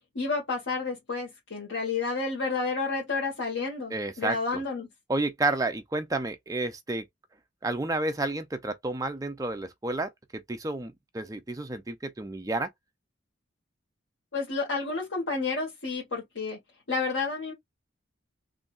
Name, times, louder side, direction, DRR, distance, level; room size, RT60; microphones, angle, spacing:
voice 1, 0.1-4.9 14.3-16.6 16.9-17.5, left 4 dB, 85° left, 1.5 m, -30 dB
voice 2, 3.9-4.6 5.1-7.0 7.6-12.7, right 2 dB, 20° right, 0.5 m, -31 dB
3.8 x 2.8 x 2.4 m
head